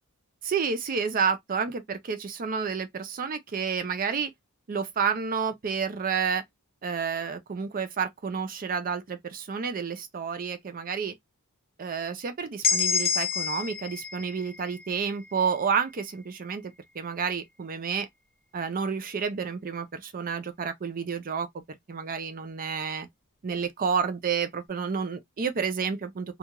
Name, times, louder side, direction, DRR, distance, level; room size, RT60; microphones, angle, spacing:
voice 1, 0.4-4.3 4.7-6.4 6.8-11.1 11.8-18.1 18.5-21.5 21.9-23.1 23.4-26.4, right 6 dB, 40° right, 0.4 m, -30 dB
sound 1, 12.6-16.5, left 5 dB, 40° left, 0.9 m, -30 dB
2.4 x 2.2 x 2.8 m
head